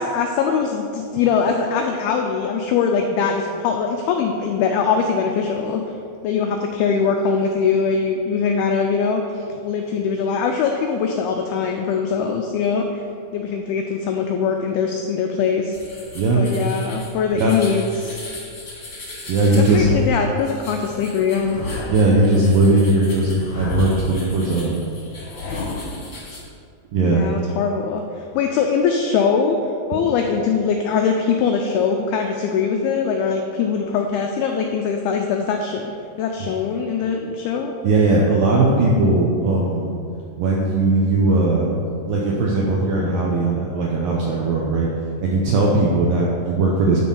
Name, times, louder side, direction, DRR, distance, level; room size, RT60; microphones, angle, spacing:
voice 1, 0.0-5.8 6.2-13.0 13.3-15.8 16.3-18.1 19.5-21.6 27.1-28.0 28.3-29.6 29.9-35.9 36.2-37.7, left 6 dB, 90° left, 3 dB, 2.2 m, -22 dB
sound 1, 15.7-26.4, left 2 dB, 40° left, 1.2 m, -39 dB
voice 2, 19.3-19.9 21.9-24.8 26.9-27.3 36.4-36.5 37.8-40.0 40.4-41.7 42.1-44.9 45.2-47.0, right 2 dB, 80° right, -3 dB, 2.0 m, -18 dB
sound 2, 19.4-20.2 21.3-22.1 23.3-24.1 25.1-26.0, left 3 dB, 65° left, 1.8 m, -29 dB
12.5 x 4.3 x 5.4 m, 2.4 s
omnidirectional pair, 5.1 m